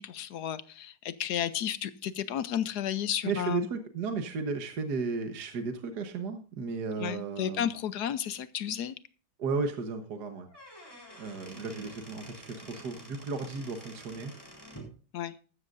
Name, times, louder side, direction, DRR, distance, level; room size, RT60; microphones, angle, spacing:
voice 1, 0.0-3.7 7.0-9.0 15.1-15.4, left 9 dB, 70° left, 14 dB, 1.0 m, -32 dB
voice 2, 3.2-7.7 9.4-10.5 11.2-14.3, right 4 dB, 55° right, 6 dB, 1.7 m, -34 dB
Squeak / Wood, 10.3-14.9, equal, 10° left, 3.9 m, -49 dB
14.0 x 13.0 x 2.6 m, 0.38 s
omnidirectional pair, 2.3 m